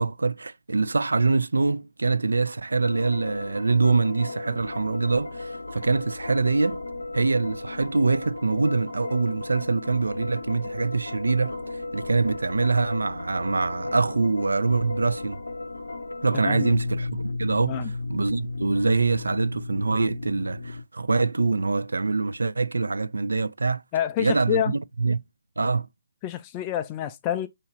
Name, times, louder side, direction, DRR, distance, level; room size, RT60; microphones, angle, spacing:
voice 1, 0.0-6.8 7.1-15.4 16.2-17.8 18.1-23.8 24.2-25.2 25.6-25.9, right 3 dB, 80° right, 0.3 m, -24 dB
sound 1, 2.8-20.8, left 2 dB, 85° left, 0.6 m, -35 dB
voice 2, 16.4-16.8 17.7-17.9 23.9-24.7 26.2-27.5, left 11 dB, 25° left, 0.3 m, -27 dB
2.9 x 2.5 x 4.3 m
figure-of-eight pair, 145°, 0 cm